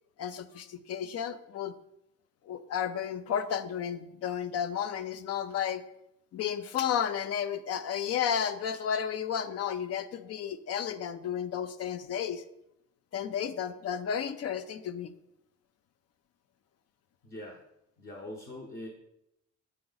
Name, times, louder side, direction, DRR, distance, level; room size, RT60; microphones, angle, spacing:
voice 1, 0.2-1.7 2.5-5.8 6.3-12.4 13.1-15.1, left 8 dB, 55° left, 13 dB, 0.5 m, -32 dB
voice 2, 17.2-17.6 18.0-18.9, left 1 dB, 30° left, 0 dB, 0.9 m, -42 dB
7.7 x 4.8 x 4.0 m, 0.82 s
cardioid pair, 145°, 29 cm